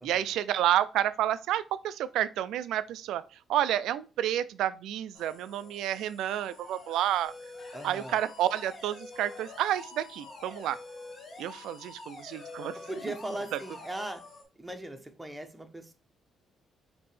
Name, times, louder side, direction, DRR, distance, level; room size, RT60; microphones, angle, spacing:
voice 1, 0.0-7.3 7.8-10.8 11.4-12.8 13.1-13.2 13.5-13.6, right 12 dB, 85° right, 0.3 m, -30 dB
sound 1, 5.1-14.4, left 3 dB, 70° left, 2.0 m, -52 dB
sound 2, 7.2-14.1, left 3 dB, 45° left, 1.6 m, -47 dB
voice 2, 7.7-8.1 12.7-14.2 14.6-15.9, right 1 dB, 10° right, 0.8 m, -39 dB
5.2 x 2.9 x 3.3 m
cardioid pair, 90°, 0 cm